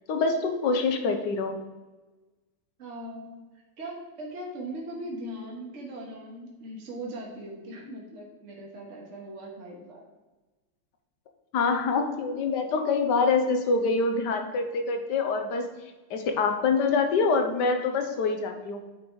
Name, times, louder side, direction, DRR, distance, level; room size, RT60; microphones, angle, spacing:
voice 1, 0.1-1.5 11.5-15.7 16.1-18.8, left 4 dB, 65° left, 6 dB, 1.4 m, -25 dB
voice 2, 2.8-10.1, right 1 dB, 40° right, -1 dB, 1.5 m, -40 dB
9.7 x 3.9 x 4.7 m, 1.2 s
omnidirectional pair, 2.1 m